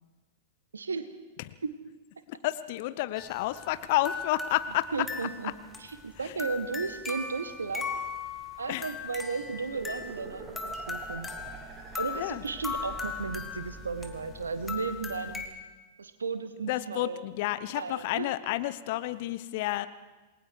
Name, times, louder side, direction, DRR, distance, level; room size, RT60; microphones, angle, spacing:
voice 1, 0.7-1.0 1.6-1.7 4.9-5.5 5.8-8.0 8.6-11.3 11.9-15.5 16.0-17.2 17.7-18.3, right 4 dB, 75° right, 10 dB, 1.7 m, -34 dB
voice 2, 2.3-4.9 8.7-8.9 12.1-12.4 16.7-19.9, left 16 dB, 50° left, 14 dB, 1.0 m, -30 dB
sound 1, 3.2-15.5, left 5 dB, 10° left, 2.1 m, -39 dB
sound 2, 9.4-14.7, right 4 dB, 35° right, 4.3 m, -48 dB
28.0 x 20.5 x 4.8 m, 1.2 s
figure-of-eight pair, 100°, 0 cm